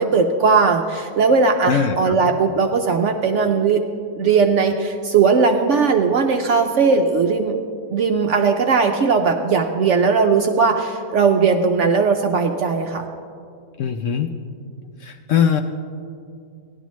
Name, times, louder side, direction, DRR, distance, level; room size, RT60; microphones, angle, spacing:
voice 1, 0.0-3.8 4.2-7.6 7.9-13.1, right 5 dB, 65° right, 4 dB, 0.7 m, -18 dB
voice 2, 1.7-2.2 13.8-14.3 15.0-15.6, left 8 dB, 70° left, 5 dB, 0.7 m, -20 dB
16.0 x 11.0 x 3.1 m, 2.4 s
omnidirectional pair, 1.7 m